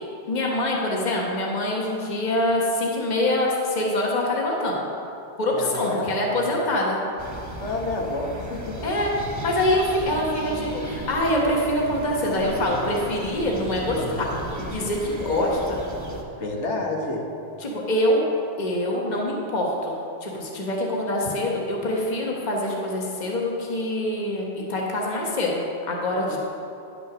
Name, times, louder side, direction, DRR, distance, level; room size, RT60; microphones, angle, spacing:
voice 1, 0.3-4.8 5.4-7.0 8.8-9.1 9.4-14.3 14.7-15.8 17.6-18.2 18.6-20.0 20.2-26.4, left 1 dB, 40° left, -2 dB, 1.3 m, -25 dB
voice 2, 5.5-6.5 7.6-8.8 15.2-15.7 16.4-17.2 26.3-26.4, left 2 dB, 85° left, 0 dB, 1.6 m, -30 dB
sound 1, 7.2-16.2, right 1 dB, 15° right, 1.0 m, -35 dB
10.0 x 6.0 x 6.1 m, 2.7 s
omnidirectional pair, 1.2 m